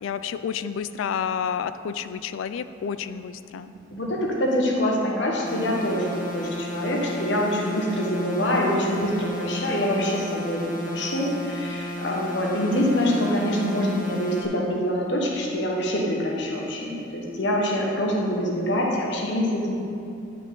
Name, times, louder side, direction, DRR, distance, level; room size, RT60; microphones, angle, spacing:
voice 1, 0.0-3.7, left 7 dB, 80° left, 12 dB, 0.3 m, -30 dB
voice 2, 3.6-6.1 6.3-19.7, left 1 dB, 65° left, -2 dB, 1.2 m, -25 dB
sound 1, 5.5-14.5, equal, 40° left, 0.8 m, -34 dB
10.0 x 4.9 x 3.8 m, 2.7 s
head